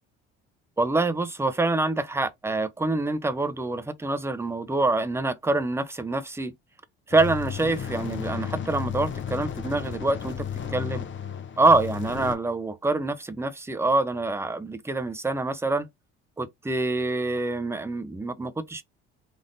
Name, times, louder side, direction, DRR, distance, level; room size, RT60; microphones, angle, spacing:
voice 1, 0.8-6.5 7.1-11.1 11.6-15.9 16.4-18.8, right 2 dB, 10° right, 0.6 m, -26 dB
sound 1, 7.1-12.3, left 8 dB, 40° left, 0.8 m, -33 dB
3.5 x 2.5 x 2.6 m
hypercardioid pair, 60°, 31 cm